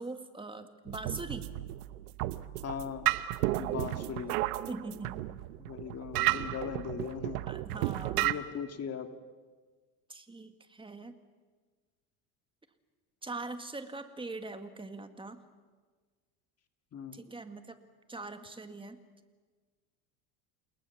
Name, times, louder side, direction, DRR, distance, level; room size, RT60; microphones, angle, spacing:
voice 1, 0.0-1.5 3.6-3.9 4.7-5.2 7.5-8.3 10.1-11.2 13.2-15.4 17.1-17.8 18.1-19.0, right 3 dB, 10° right, 8 dB, 1.9 m, -42 dB
sound 1, 0.9-8.3, right 17 dB, 80° right, 1.0 m, -33 dB
voice 2, 2.6-3.1 3.6-4.4 5.6-7.4 8.2-9.1 16.9-17.2, left 7 dB, 35° left, 7 dB, 2.1 m, -39 dB
28.5 x 20.5 x 7.2 m, 1.4 s
supercardioid pair, 105°, 45 cm